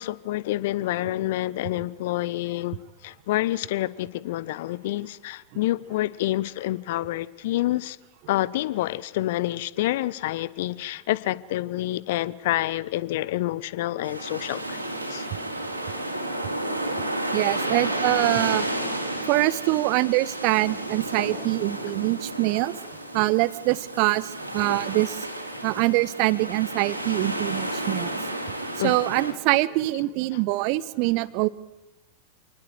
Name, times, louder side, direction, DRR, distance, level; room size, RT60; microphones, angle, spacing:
voice 1, 0.0-2.8 3.0-8.0 8.3-14.8 15.1-15.3 28.8-29.0, left 15 dB, 55° left, 0.9 m, -28 dB
sound 1, 14.0-29.3, right 1 dB, 85° right, 4.5 m, -31 dB
voice 2, 17.3-18.6 19.3-22.8 23.1-25.2 25.6-28.2 28.8-31.5, right 20 dB, 45° right, 1.1 m, -24 dB
28.0 x 20.0 x 8.0 m
figure-of-eight pair, 90°, 0 cm